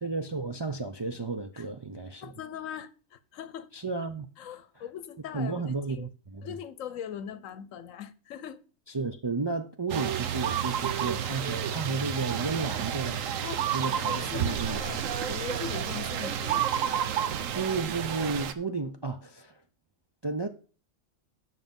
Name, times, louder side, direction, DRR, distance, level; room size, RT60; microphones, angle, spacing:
voice 1, 0.0-2.3 3.7-4.3 4.8-4.9 5.3-6.6 8.9-13.3 13.7-15.0 17.5-19.6 20.2-20.5, right 3 dB, 40° right, 0.4 m, -33 dB
voice 2, 2.2-3.7 4.4-5.6 5.9-6.1 6.4-8.6 13.4-15.0 15.3-16.7, left 9 dB, 80° left, 1.1 m, -40 dB
sound 1, 9.9-18.5, right 9 dB, 85° right, 1.1 m, -30 dB
9.4 x 6.2 x 5.3 m
omnidirectional pair, 1.3 m